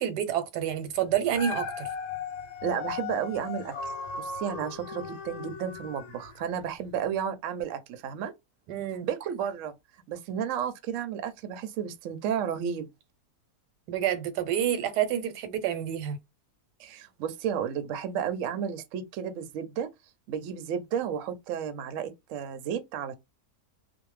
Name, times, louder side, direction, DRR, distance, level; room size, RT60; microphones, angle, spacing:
voice 1, 0.0-1.9 8.7-9.1 13.9-16.2, right 10 dB, 90° right, 1.2 m, -28 dB
Dog, 1.1-6.4 7.0-7.1, left 5 dB, 70° left, 0.9 m, -37 dB
voice 2, 2.6-8.3 9.0-9.7 10.1-12.9 16.8-19.9 20.3-23.1, right 8 dB, 70° right, 0.8 m, -32 dB
2.6 x 2.1 x 3.1 m
omnidirectional pair, 1.7 m